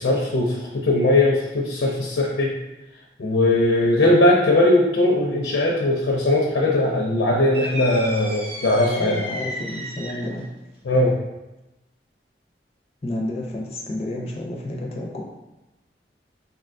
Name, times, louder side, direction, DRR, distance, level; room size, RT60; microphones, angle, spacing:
voice 1, 0.0-2.5 3.2-9.2 10.9-11.1, left 1 dB, 90° left, -2 dB, 0.5 m, -19 dB
sound 1, 7.5-10.4, equal, 35° right, 0.6 m, -33 dB
voice 2, 8.8-10.5 13.0-15.2, left 1 dB, 35° left, -2 dB, 0.4 m, -30 dB
3.8 x 2.2 x 2.5 m, 0.99 s
head